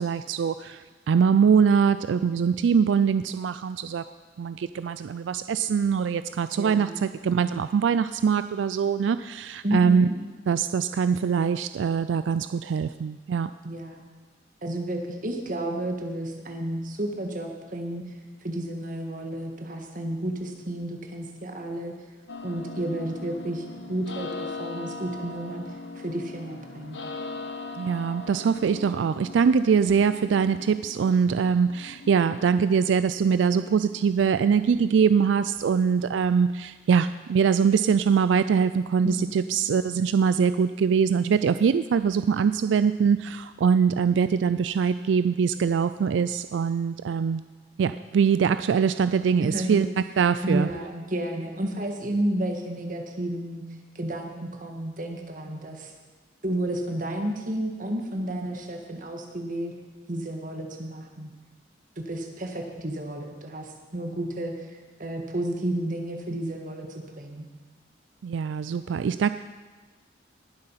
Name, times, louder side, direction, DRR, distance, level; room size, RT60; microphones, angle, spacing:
voice 1, 0.0-4.0 4.4-10.1 10.5-13.5 27.8-47.4 47.8-49.9 50.2-50.7 68.2-69.3, right 6 dB, 85° right, 13 dB, 0.3 m, -23 dB
voice 2, 6.6-7.0 9.6-10.1 13.6-14.1 14.6-18.0 18.4-21.9 22.4-27.0 39.0-39.6 49.4-49.9 50.4-53.6 54.0-55.9 56.4-59.7 60.1-61.3 62.0-64.6 65.0-66.9 67.2-67.5, right 1 dB, 45° right, 3 dB, 1.7 m, -31 dB
sound 1, 22.3-36.2, left 3 dB, 75° left, 1.2 m, -41 dB
19.5 x 7.7 x 5.8 m, 1.3 s
head